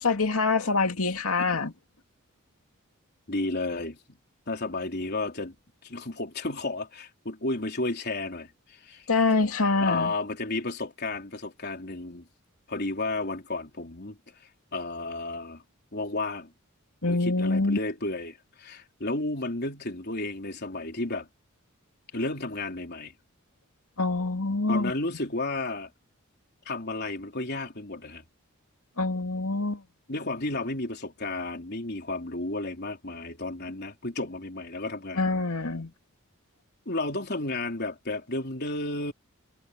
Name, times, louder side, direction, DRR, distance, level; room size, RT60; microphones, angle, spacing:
voice 1, 0.0-1.7 9.1-10.1 17.0-17.8 24.0-24.9 29.0-29.8 35.2-35.9, left 3 dB, 85° left, 2.4 m, -25 dB
voice 2, 3.3-4.2 4.5-5.6 5.8-9.1 9.8-12.3 12.7-14.2 14.7-15.6 15.9-16.5 17.1-21.3 22.1-23.1 24.7-25.9 26.7-28.2 30.1-35.2 36.9-39.1, left 2 dB, 50° left, 3.9 m, -32 dB
head